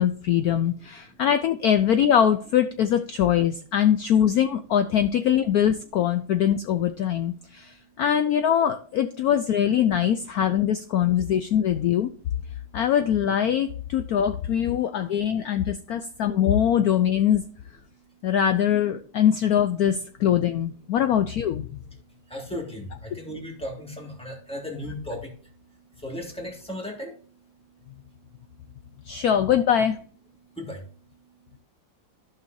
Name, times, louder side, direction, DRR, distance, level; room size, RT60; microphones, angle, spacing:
voice 1, 0.0-12.1 12.7-17.4 18.2-21.7 29.1-30.0, left 9 dB, 80° left, 8 dB, 0.8 m, -22 dB
voice 2, 22.3-25.5 25.9-27.2 30.5-30.9, equal, 5° left, 0 dB, 1.7 m, -36 dB
14.0 x 5.5 x 2.6 m, 0.42 s
omnidirectional pair, 2.1 m